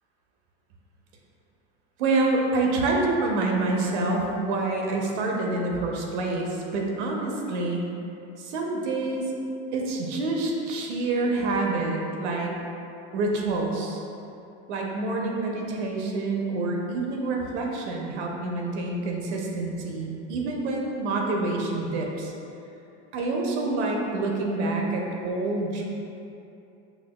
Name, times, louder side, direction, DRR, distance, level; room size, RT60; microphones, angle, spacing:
voice 1, 2.0-7.8 8.4-9.2 9.7-12.5 13.1-14.0 14.7-22.3 23.1-25.9, right 2 dB, 80° right, 0 dB, 0.7 m, -27 dB
5.6 x 2.3 x 2.2 m, 2.8 s
supercardioid pair, 155°, 34 cm